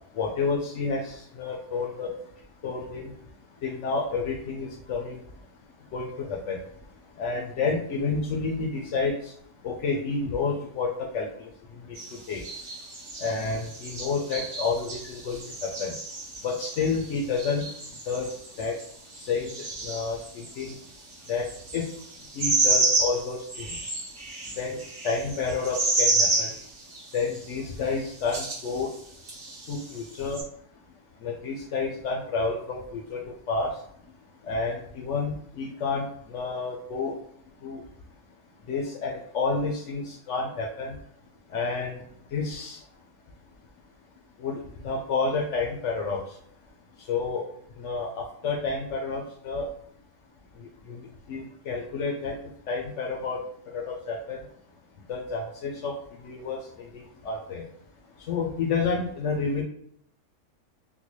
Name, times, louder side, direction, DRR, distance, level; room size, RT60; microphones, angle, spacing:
voice 1, 0.1-2.1 2.6-3.1 3.6-5.2 5.9-6.6 7.1-9.3 9.6-12.4 13.2-15.9 16.4-17.6 18.1-18.8 19.2-20.8 21.3-21.5 21.7-21.9 22.3-23.8 24.6-24.8 25.0-26.5 27.1-28.9 29.7-30.4 31.2-33.8 34.4-37.2 37.6-37.8 38.7-41.0 41.5-42.0 42.3-42.8 44.4-46.4 47.0-47.5 47.8-49.7 50.6-52.4 52.7-53.4 53.7-54.4 55.1-57.6 58.2-59.6, left 4 dB, 75° left, 1 dB, 0.6 m, -30 dB
sound 1, 11.9-20.7 21.1-27.4 28.0-29.0 29.3-30.4, right 2 dB, 45° right, 0.9 m, -30 dB
3.8 x 2.2 x 3.0 m, 0.67 s
omnidirectional pair, 1.8 m